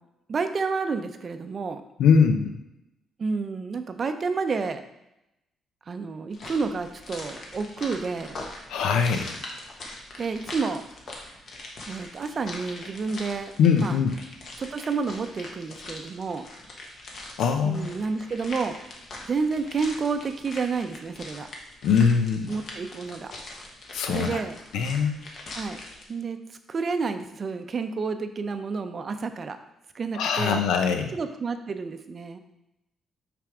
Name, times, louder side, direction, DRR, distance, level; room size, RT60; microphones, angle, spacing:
voice 1, 0.3-1.8 3.2-4.8 5.9-8.4 10.2-10.8 11.9-14.0 14.6-16.4 17.6-18.7 19.2-21.5 22.5-23.3 24.1-24.5 25.5-25.8 26.1-26.4 26.7-29.6 29.9-30.6 31.1-32.4, right 4 dB, 45° right, 8 dB, 0.5 m, -30 dB
voice 2, 2.0-2.5 8.7-9.3 13.6-14.1 17.4-17.9 21.8-22.6 23.9-24.4 24.7-25.2 30.1-31.1, left 6 dB, 85° left, 6 dB, 0.6 m, -22 dB
sound 1, 6.3-26.0, left 2 dB, 55° left, 1.2 m, -42 dB
5.9 x 3.4 x 4.8 m, 0.87 s
cardioid pair, 90°, 0 cm